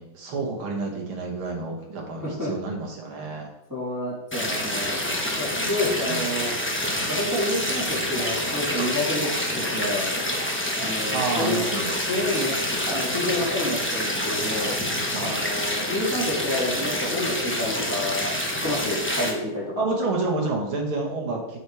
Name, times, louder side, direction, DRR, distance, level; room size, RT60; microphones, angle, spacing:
voice 1, 0.0-3.5 6.0-6.3 11.1-11.9 15.1-15.4 19.8-21.6, right 3 dB, 80° right, 0 dB, 2.4 m, -29 dB
voice 2, 3.7-5.1 5.3-6.5 7.1-10.1 10.8-11.7 12.0-12.5 12.8-14.7 15.2-18.4 18.6-19.8, left 1 dB, 10° right, -8 dB, 2.7 m, -29 dB
sound 1, 4.3-19.3, left 1 dB, 15° left, 0.4 m, -27 dB
7.9 x 4.9 x 4.6 m, 0.86 s
omnidirectional pair, 2.3 m